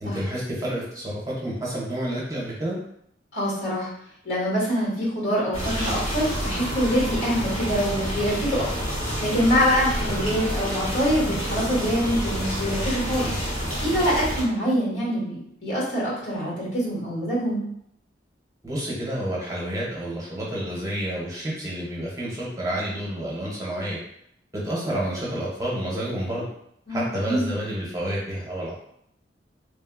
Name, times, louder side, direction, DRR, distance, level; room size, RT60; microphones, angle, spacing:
voice 1, 0.0-2.8 18.6-24.0 24.5-26.5 26.9-28.7, right 1 dB, 20° right, -6 dB, 0.6 m, -29 dB
voice 2, 3.3-3.9 4.2-8.7 9.2-13.3 13.8-17.7 26.9-27.5, equal, 85° left, -6 dB, 1.4 m, -25 dB
sound 1, 5.5-14.4, equal, 35° left, 0.8 m, -28 dB
3.2 x 2.1 x 2.2 m, 0.72 s
head